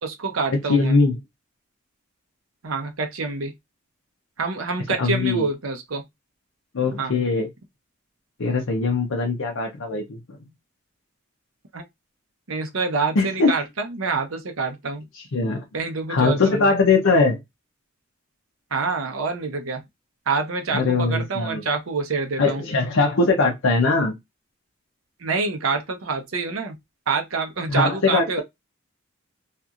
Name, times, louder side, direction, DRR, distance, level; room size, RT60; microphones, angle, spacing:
voice 1, 0.0-1.0 2.6-3.5 4.4-6.0 6.9-7.1 11.7-11.8 12.5-15.1 15.7-16.7 18.7-19.8 20.3-22.6 25.2-26.8 27.1-28.4, right 4 dB, 80° right, 0.7 m, -26 dB
voice 2, 0.7-1.2 5.0-5.5 6.7-7.5 8.4-10.4 13.2-13.5 15.1-15.6 16.1-17.4 20.7-21.6 22.4-24.2 27.7-28.4, left 3 dB, 75° left, 0.6 m, -21 dB
2.8 x 2.5 x 2.4 m
head